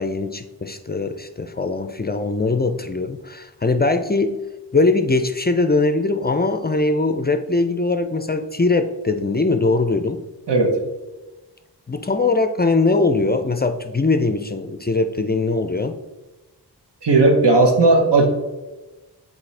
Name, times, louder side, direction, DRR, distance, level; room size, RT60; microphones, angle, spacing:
voice 1, 0.0-4.4 4.7-10.2 11.9-16.0, left 3 dB, 25° left, 7 dB, 0.4 m, -21 dB
voice 2, 10.5-10.8 17.0-18.3, right 2 dB, 85° right, 2 dB, 1.1 m, -15 dB
7.3 x 4.2 x 3.3 m, 1.1 s
wide cardioid pair, 90°, 41 cm